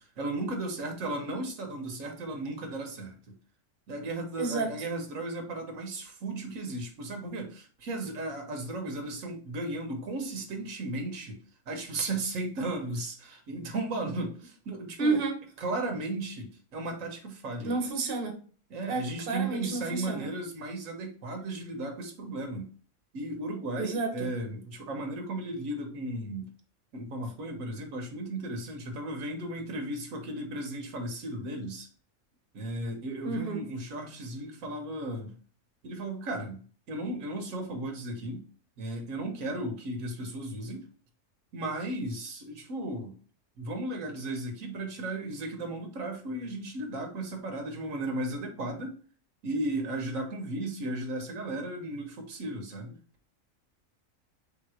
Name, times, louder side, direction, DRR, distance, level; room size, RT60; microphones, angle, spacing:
voice 1, 0.0-3.2 3.9-11.4 11.7-15.2 15.6-17.7 18.7-22.7 23.1-26.5 26.9-31.9 32.5-35.4 35.8-36.6 36.9-38.4 38.8-40.9 41.5-43.1 43.6-49.0 49.4-52.9, right 2 dB, 80° right, 4 dB, 1.3 m, -35 dB
voice 2, 4.4-4.7 15.0-15.4 17.6-18.4 18.9-20.3 23.8-24.3 33.2-33.6, right 3 dB, 50° right, 3 dB, 1.0 m, -30 dB
3.5 x 2.9 x 4.8 m, 0.42 s
omnidirectional pair, 1.4 m